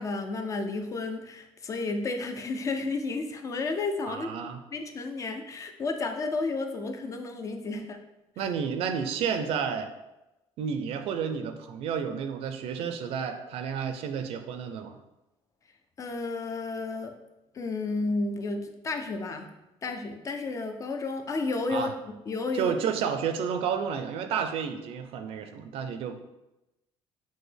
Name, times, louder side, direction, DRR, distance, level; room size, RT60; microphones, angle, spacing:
voice 1, 0.0-4.4 4.7-8.0 16.0-17.1 17.5-19.5 19.8-22.7, left 3 dB, 30° left, 6 dB, 0.4 m, -32 dB
voice 2, 4.1-4.6 7.7-7.9 8.4-9.9 10.6-15.0 21.7-21.9 22.5-26.2, right 7 dB, 65° right, 8 dB, 0.4 m, -31 dB
6.0 x 2.1 x 3.3 m, 0.95 s
cardioid pair, 145°, 11 cm